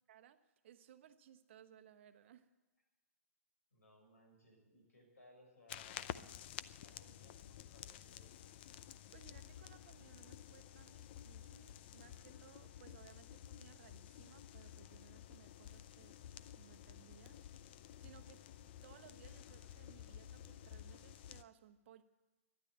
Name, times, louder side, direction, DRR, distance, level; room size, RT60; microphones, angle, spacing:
voice 1, 0.1-2.5 9.1-16.2 16.6-17.7 18.0-22.0, right 10 dB, 50° right, 10 dB, 1.0 m, -62 dB
voice 2, 3.7-6.4 6.8-8.3, left 1 dB, 75° left, 1 dB, 6.2 m, -65 dB
sound 1, 5.7-21.4, left 11 dB, 45° left, 0.6 m, -52 dB
12.5 x 11.0 x 9.4 m, 1.1 s
hypercardioid pair, 130°, 8 cm